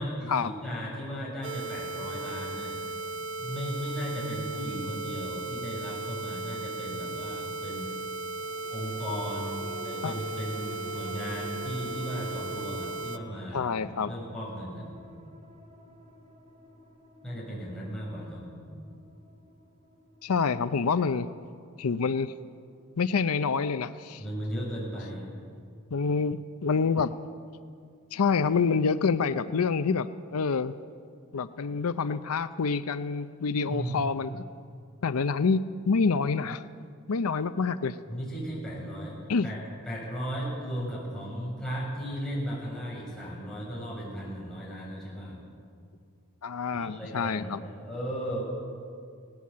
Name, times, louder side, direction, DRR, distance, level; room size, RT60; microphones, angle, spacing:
voice 1, 0.0-2.8 3.4-7.9 8.7-14.9 17.2-18.4 24.2-25.2 33.7-34.0 38.1-39.2 39.4-39.6 39.9-45.4 46.7-48.4, equal, 5° left, -6 dB, 6.9 m, -36 dB
sound 1, 1.4-13.2, right 3 dB, 60° right, 1.0 m, -36 dB
sound 2, 8.3-23.0 23.4-23.5, right 1 dB, 30° right, 2.1 m, -50 dB
voice 2, 13.5-14.1 20.2-21.3 21.8-22.4 23.0-24.2 25.9-27.1 28.1-30.7 31.3-34.4 35.0-36.6 37.1-38.0 39.3-39.5 46.4-47.6, left 5 dB, 90° left, 12 dB, 0.6 m, -27 dB
19.0 x 18.0 x 8.5 m, 2.3 s
head